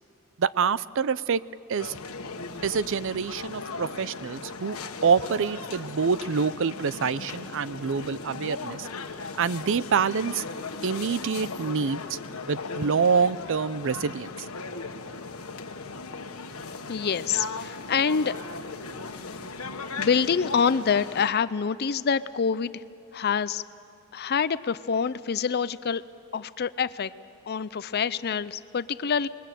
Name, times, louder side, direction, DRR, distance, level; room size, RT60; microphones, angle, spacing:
voice 1, 0.4-1.4 1.7-2.0 2.6-8.9 9.4-12.2 12.5-14.3, right 6 dB, 60° right, 18 dB, 0.5 m, -26 dB
sound 1, 1.8-21.3, left 4 dB, 85° left, 1.4 m, -37 dB
voice 2, 16.9-18.4 19.2-19.4 20.0-22.8 23.1-23.6 24.1-26.0 26.3-27.1 27.5-29.3, left 6 dB, 45° left, 15 dB, 0.5 m, -26 dB
27.5 x 21.0 x 7.6 m, 2.6 s
head